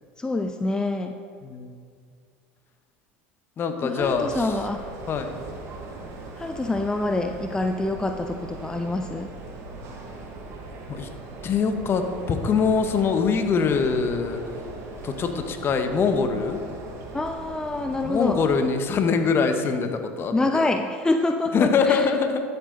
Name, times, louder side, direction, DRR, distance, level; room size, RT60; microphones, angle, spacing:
voice 1, 0.2-1.1 3.8-4.8 6.4-9.3 17.1-18.4 20.3-22.1, left 2 dB, 10° left, 6 dB, 0.5 m, -26 dB
voice 2, 1.4-1.7 3.6-4.5 5.1-5.4 10.9-11.1 11.4-12.0 12.3-14.4 15.0-16.6 18.0-20.6 21.5-22.4, left 5 dB, 35° left, 7 dB, 1.2 m, -23 dB
sound 1, 4.0-18.6, right 3 dB, 45° right, 1.9 m, -40 dB
12.0 x 8.2 x 4.0 m, 2.2 s
hypercardioid pair, 85°, 6 cm